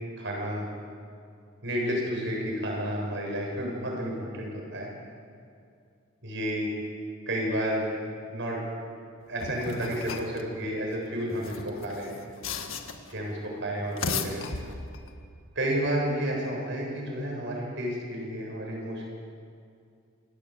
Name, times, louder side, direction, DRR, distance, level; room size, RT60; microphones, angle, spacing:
voice 1, 0.2-0.7 1.6-4.9 6.2-6.7 7.3-7.9 8.3-8.6 9.3-12.2 13.1-14.5 15.6-19.0, equal, 60° right, -1 dB, 8.0 m, -31 dB
sound 1, 9.4-10.4 11.3-13.1 13.8-15.1, left 4 dB, 70° left, 1.8 m, -35 dB
28.5 x 17.0 x 8.4 m, 2.3 s
head